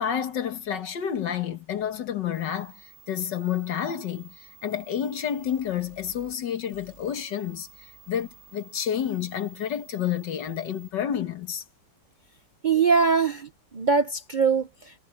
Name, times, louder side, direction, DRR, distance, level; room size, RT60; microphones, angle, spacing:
voice 1, 0.0-7.7 8.1-11.6, left 9 dB, 85° left, 2.1 m, -30 dB
sound 1, 2.3-10.9, right 7 dB, 50° right, 3.6 m, -53 dB
voice 2, 12.6-15.0, right 5 dB, 90° right, 0.4 m, -23 dB
omnidirectional pair, 1.8 m